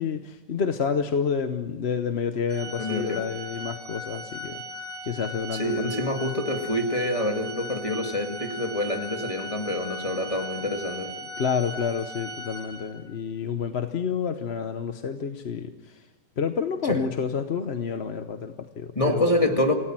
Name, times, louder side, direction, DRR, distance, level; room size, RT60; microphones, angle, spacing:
voice 1, 0.0-6.1 11.2-16.1 16.4-19.5, left 6 dB, 50° left, 7 dB, 1.1 m, -29 dB
Organ, 2.5-13.1, equal, 35° right, 2.1 m, -38 dB
voice 2, 2.8-3.2 5.6-11.1 16.9-17.1 19.0-19.8, left 1 dB, 20° left, 3 dB, 2.1 m, -26 dB
28.0 x 17.5 x 7.6 m, 1.1 s
omnidirectional pair, 1.5 m